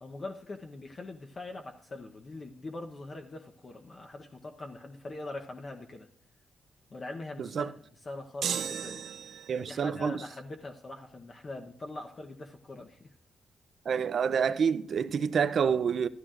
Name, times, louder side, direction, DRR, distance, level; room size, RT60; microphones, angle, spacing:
voice 1, 0.0-6.1 6.9-7.7 8.0-9.0 9.7-13.1, left 2 dB, 40° left, 0.8 m, -42 dB
voice 2, 7.4-7.7 9.5-10.2 13.9-16.1, right 6 dB, 60° right, 0.5 m, -28 dB
sound 1, 8.4-9.7, right 8 dB, 85° right, 0.8 m, -35 dB
13.5 x 12.5 x 2.5 m
cardioid pair, 100°, 0 cm